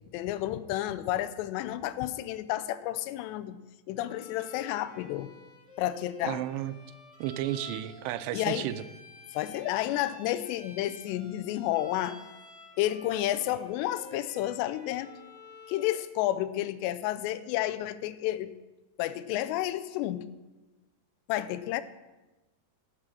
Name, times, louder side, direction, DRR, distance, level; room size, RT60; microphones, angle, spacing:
voice 1, 0.1-3.6 3.9-5.3 5.8-6.4 8.3-8.7 9.3-12.2 12.8-15.1 15.7-18.5 19.0-20.3 21.3-21.8, left 14 dB, 90° left, 13 dB, 2.7 m, -31 dB
Bowed string instrument, 4.0-16.1, left 1 dB, 75° left, 0.3 m, -50 dB
voice 2, 6.2-6.7 7.2-8.8, right 13 dB, 85° right, 12 dB, 2.8 m, -33 dB
11.5 x 7.2 x 6.2 m, 1.1 s
omnidirectional pair, 4.9 m